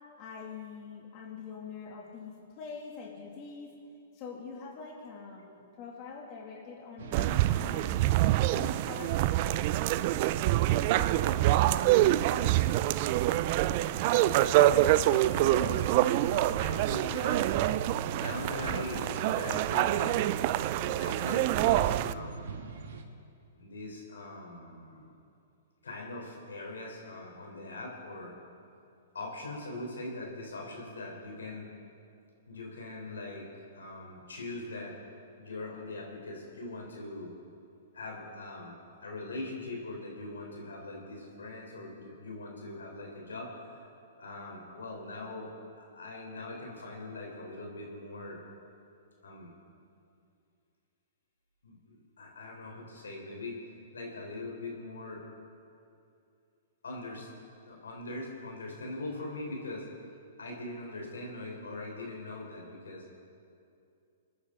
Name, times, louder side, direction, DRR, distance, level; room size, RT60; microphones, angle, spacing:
voice 1, 0.2-3.7 4.1-8.2 8.5-9.6 10.7-12.4, left 5 dB, 40° left, -2 dB, 2.3 m, -44 dB
sound 1, 7.0-23.0, right 4 dB, 65° right, 1.4 m, -42 dB
sound 2, 7.1-22.1, right 14 dB, 45° right, 0.4 m, -26 dB
voice 2, 14.7-15.8 16.6-17.5 18.1-20.2 20.8-22.5 23.6-25.1 25.8-28.3 29.1-31.7 32.5-33.5 33.7-35.0 35.4-37.3 37.9-38.8 39.0-43.8 44.2-45.5 45.8-48.4 49.2-49.5 51.6-53.6 53.9-55.2 56.8-57.3 57.7-59.9 60.4-63.0, left 2 dB, 85° left, -1 dB, 3.6 m, -41 dB
27.0 x 9.6 x 3.7 m, 2.5 s
hypercardioid pair, 120°, 0 cm